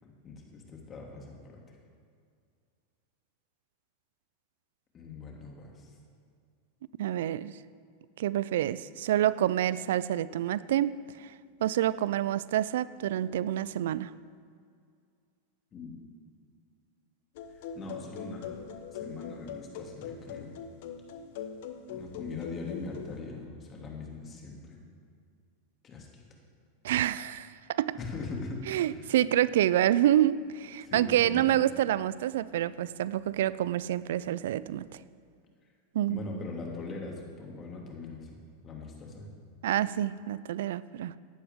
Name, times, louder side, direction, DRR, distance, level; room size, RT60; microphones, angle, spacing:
voice 1, 0.0-1.6 4.9-5.9 15.7-15.9 17.7-18.6 18.9-20.5 21.9-24.8 25.8-26.2 28.0-29.1 30.8-31.5 36.1-39.3, left 3 dB, 30° left, 0 dB, 2.6 m, -41 dB
voice 2, 7.0-7.5 8.2-11.3 11.6-14.1 26.8-28.0 28.7-34.9 35.9-36.2 39.6-41.1, right 12 dB, 70° right, 18 dB, 0.4 m, -27 dB
sound 1, 17.4-23.2, left 7 dB, 65° left, 0.9 m, -42 dB
15.0 x 11.0 x 3.7 m, 2.2 s
hypercardioid pair, 100°, 0 cm